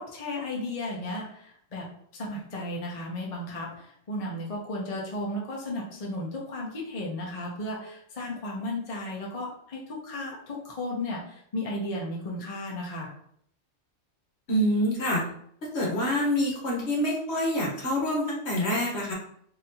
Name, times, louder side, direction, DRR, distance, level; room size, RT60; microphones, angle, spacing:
voice 1, 0.0-1.9 2.1-13.1, left 1 dB, 35° left, -2 dB, 0.7 m, -34 dB
voice 2, 14.5-15.2 15.7-19.1, equal, 60° left, -3 dB, 1.3 m, -26 dB
4.0 x 2.8 x 2.7 m, 0.67 s
omnidirectional pair, 1.3 m